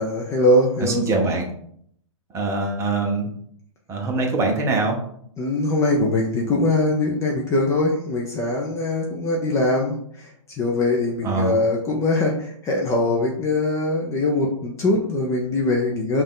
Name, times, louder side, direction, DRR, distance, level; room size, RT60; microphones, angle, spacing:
voice 1, 0.0-1.0 5.4-10.3 10.6-16.2, left 2 dB, 15° left, 0 dB, 0.6 m, -22 dB
voice 2, 0.8-1.4 2.3-3.3 3.9-5.0 11.2-11.6, right 3 dB, 15° right, 1 dB, 0.8 m, -23 dB
5.1 x 2.5 x 3.7 m, 0.67 s
hypercardioid pair, 140°, 17 cm